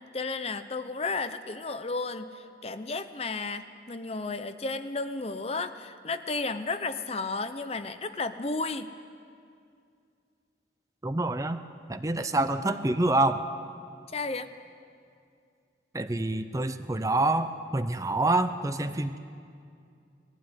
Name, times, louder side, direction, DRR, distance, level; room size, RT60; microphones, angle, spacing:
voice 1, 0.0-8.9 14.1-14.5, left 3 dB, 30° left, 10 dB, 0.7 m, -33 dB
voice 2, 11.0-11.6 11.9-13.4 15.9-19.2, right 2 dB, 15° right, 9 dB, 0.6 m, -27 dB
20.0 x 15.5 x 9.7 m, 2.4 s
head